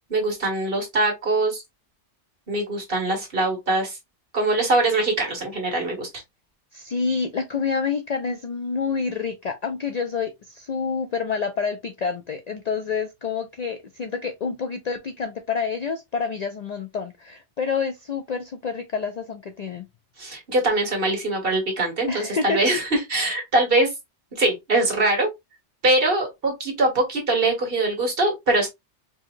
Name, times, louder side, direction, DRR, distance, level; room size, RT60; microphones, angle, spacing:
voice 1, 0.1-1.6 2.5-4.0 4.3-6.1 20.2-23.9 24.3-25.3 25.8-28.7, right 2 dB, 55° right, 1.8 m, -22 dB
voice 2, 6.7-19.8 22.1-22.6, left 5 dB, 55° left, 0.4 m, -28 dB
4.7 x 2.9 x 2.5 m
omnidirectional pair, 1.2 m